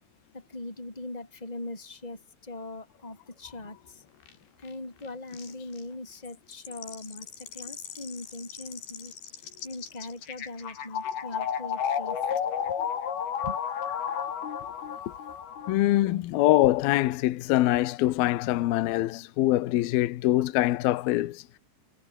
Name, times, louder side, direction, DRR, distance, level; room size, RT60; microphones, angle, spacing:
voice 1, 0.3-4.0 4.6-12.2 12.7-12.8 13.4-13.6, left 2 dB, 10° left, 5.4 m, -41 dB
sound 1, 4.3-4.4 4.7-4.8 5.0-5.1 5.3-5.8 6.2-15.8, left 8 dB, 55° left, 4.7 m, -33 dB
voice 2, 15.7-21.4, left 16 dB, 75° left, 2.4 m, -24 dB
omnidirectional pair, 5.8 m